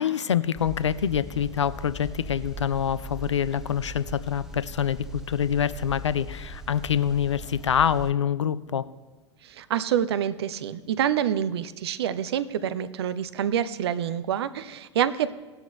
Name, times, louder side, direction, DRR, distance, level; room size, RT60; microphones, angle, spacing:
voice 1, 0.0-8.9, left 8 dB, 75° left, 16 dB, 0.4 m, -26 dB
sound 1, 0.6-8.1, equal, 5° right, 0.8 m, -40 dB
voice 2, 9.4-15.3, right 9 dB, 60° right, 13 dB, 0.6 m, -27 dB
18.0 x 12.5 x 2.2 m, 1.2 s
figure-of-eight pair, 85°, 15 cm